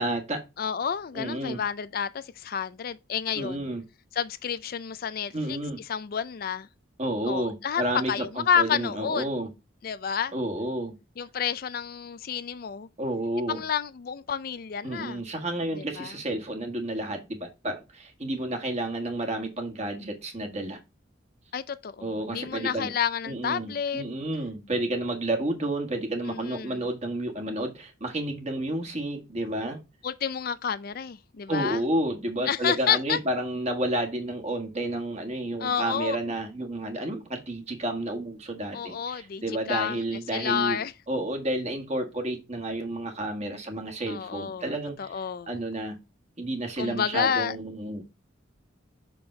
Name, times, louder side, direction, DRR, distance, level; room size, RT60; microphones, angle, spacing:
voice 1, 0.0-0.4 1.1-1.6 3.3-3.8 5.3-5.8 7.0-9.5 10.3-10.9 13.0-13.6 14.8-20.8 22.0-22.9 23.3-29.8 31.5-40.8 41.1-46.0 46.4-48.0, right 1 dB, 35° right, 1.7 m, -31 dB
voice 2, 0.6-3.6 4.1-5.6 5.9-6.7 7.3-7.8 8.1-9.3 9.8-10.3 11.2-12.9 13.5-15.2 15.7-16.1 21.5-24.0 26.3-26.8 30.0-31.8 32.5-33.2 35.6-36.2 38.7-40.0 40.3-40.9 44.1-45.5 46.8-47.6, left 7 dB, 50° left, 0.4 m, -30 dB
6.2 x 5.2 x 3.3 m
head